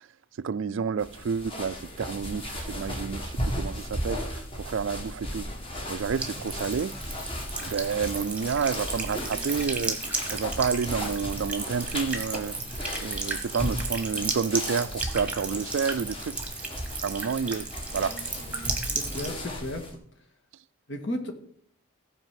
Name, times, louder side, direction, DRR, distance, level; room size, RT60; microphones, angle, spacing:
voice 1, 0.4-5.5 5.9-7.0 7.6-10.0 10.3-12.6 13.0-16.4 17.0-18.2, right 6 dB, 65° right, 0.4 m, -30 dB
sound 1, 1.0-20.0, equal, 25° left, 1.8 m, -36 dB
Buzz / Water tap faucet / Trickle dribble, 6.1-19.3, right 3 dB, 5° right, 1.4 m, -34 dB
voice 2, 18.8-19.8 20.9-21.3, left 1 dB, 60° left, 1.8 m, -34 dB
15.0 x 5.0 x 7.6 m
head